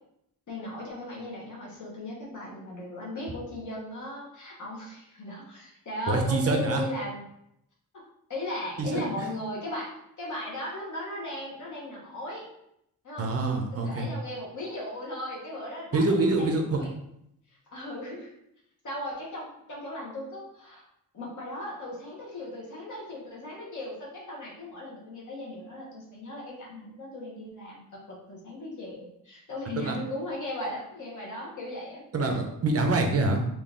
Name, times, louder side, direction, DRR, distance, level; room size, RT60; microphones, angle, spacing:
voice 1, 0.5-7.2 7.9-8.0 8.3-12.5 13.0-16.9 17.7-18.3 18.8-20.8 21.1-32.0, left 1 dB, 55° left, -4 dB, 1.0 m, -37 dB
voice 2, 6.1-6.8 8.8-9.0 13.2-14.1 15.9-16.8 29.8-29.9 32.1-33.4, right 2 dB, 40° right, 3 dB, 0.6 m, -25 dB
3.8 x 2.4 x 3.6 m, 0.78 s
wide cardioid pair, 175°, 36 cm